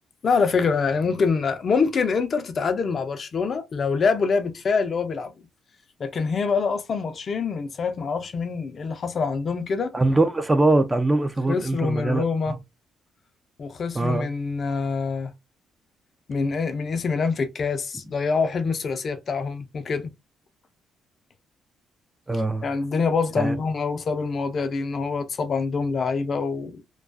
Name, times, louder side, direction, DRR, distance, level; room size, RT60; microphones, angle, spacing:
voice 1, 0.2-5.3 6.0-9.9 11.5-12.6 13.6-15.3 16.3-20.1 22.6-26.8, left 5 dB, 45° left, 0.4 m, -25 dB
voice 2, 9.9-12.6 13.9-14.3 22.3-22.7 23.4-23.6, right 2 dB, 20° right, 0.4 m, -22 dB
2.3 x 2.3 x 2.4 m
cardioid pair, 90°, 0 cm